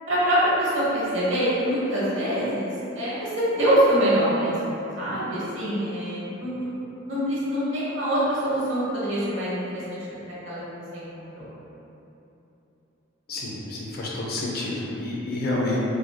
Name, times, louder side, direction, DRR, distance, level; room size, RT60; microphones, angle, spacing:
voice 1, 0.1-2.7 3.0-6.7 7.1-10.0 10.4-10.6 10.9-11.5, right 1 dB, 65° right, -9 dB, 0.9 m, -24 dB
voice 2, 13.3-15.8, left 2 dB, 45° left, -4 dB, 0.4 m, -29 dB
3.1 x 2.5 x 2.2 m, 3.0 s
head